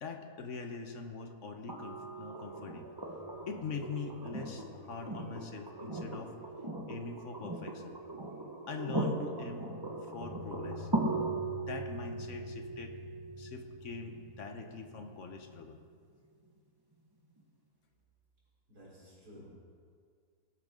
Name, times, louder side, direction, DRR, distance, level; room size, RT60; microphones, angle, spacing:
voice 1, 0.0-2.9 3.5-6.3 6.9-8.0 8.7-9.7 10.0-10.9 11.5-13.0 13.4-15.8, left 4 dB, 50° left, 6 dB, 1.1 m, -43 dB
sound 1, 1.7-15.6 17.4-17.5, right 2 dB, 15° right, 1.2 m, -39 dB
sound 2, 2.2-7.6 7.9-8.0 9.2-15.7, left 3 dB, 90° right, 3.7 m, -50 dB
voice 2, 18.7-19.6, equal, 60° right, -7 dB, 4.3 m, -53 dB
18.5 x 11.5 x 3.7 m, 2.1 s
omnidirectional pair, 1.9 m